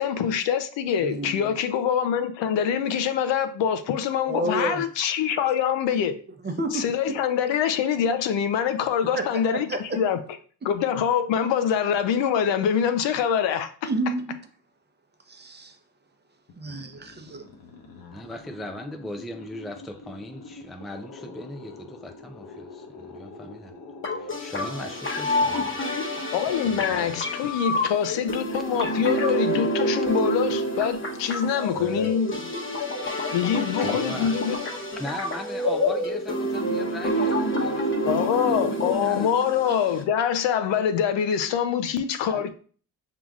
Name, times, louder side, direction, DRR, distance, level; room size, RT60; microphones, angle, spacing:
voice 1, 0.0-6.2 6.7-10.2 10.6-13.7 26.3-32.4 33.3-34.6 38.1-42.5, left 8 dB, 70° left, 0.7 m, -24 dB
voice 2, 1.0-1.5 4.3-4.9 6.4-6.9 9.2-10.0 13.8-14.4 15.3-15.8 16.6-17.4, right 2 dB, 25° right, 0.8 m, -30 dB
sound 1, 16.5-27.6, left 4 dB, 50° left, 1.0 m, -45 dB
voice 3, 18.1-23.7 24.1-25.8 26.6-27.2 31.8-32.1 33.8-34.4 35.0-39.3 40.0-40.1 42.3-42.5, left 1 dB, ahead, 0.4 m, -39 dB
sound 2, 24.0-40.0, equal, 25° left, 1.0 m, -28 dB
5.8 x 3.8 x 2.4 m
supercardioid pair, 65°, 45 cm